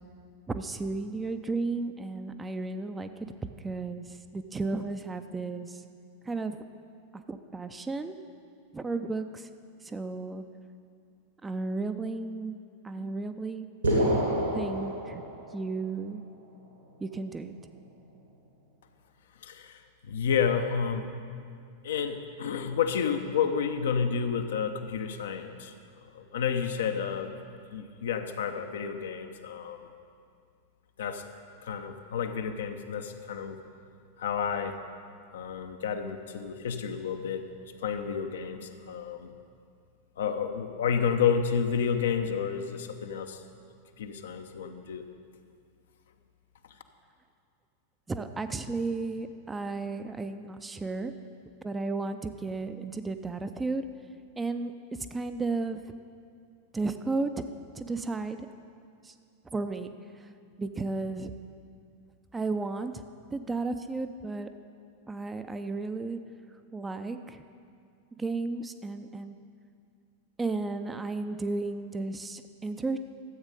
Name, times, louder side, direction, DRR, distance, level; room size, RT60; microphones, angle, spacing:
voice 1, 0.5-3.1 3.6-4.0 4.3-5.8 6.3-6.6 7.3-8.2 8.7-9.5 9.8-10.4 11.4-12.6 12.8-13.7 14.5-15.2 15.5-16.2 17.0-17.5 48.1-51.1 51.6-53.8 54.4-54.7 55.1-55.8 56.7-57.4 57.8-58.4 59.0-59.1 59.5-59.9 60.6-61.3 62.3-63.0 63.3-64.5 65.1-66.2 66.7-67.4 68.2-69.4 70.4-73.0, right 3 dB, 15° right, 9 dB, 0.5 m, -33 dB
sound 1, 13.8-15.8, equal, 80° right, 2.6 m, -27 dB
voice 2, 19.4-21.1 21.8-25.7 26.1-27.4 27.7-29.9 31.0-31.2 31.6-33.6 34.2-34.8 35.3-37.5 37.8-39.3 40.2-43.4 44.0-45.1, left 7 dB, 60° left, 7 dB, 0.7 m, -30 dB
12.5 x 8.0 x 5.4 m, 2.3 s
figure-of-eight pair, 90°, 0 cm